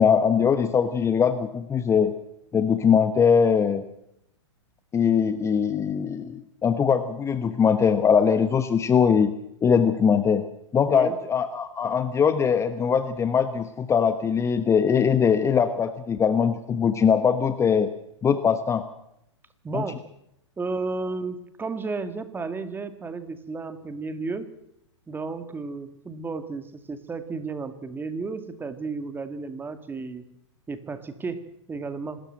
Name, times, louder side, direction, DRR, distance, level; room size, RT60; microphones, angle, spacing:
voice 1, 0.0-2.1 2.5-3.8 4.9-9.3 9.6-10.4 10.7-17.9 18.2-18.8 19.7-19.8, left 7 dB, 15° left, 11 dB, 1.1 m, -21 dB
voice 2, 10.9-11.2 19.6-20.0 20.6-24.5 25.1-30.2 30.7-32.2, right 4 dB, 15° right, 10 dB, 2.0 m, -33 dB
25.5 x 13.5 x 7.9 m, 0.78 s
hypercardioid pair, 115°, 16 cm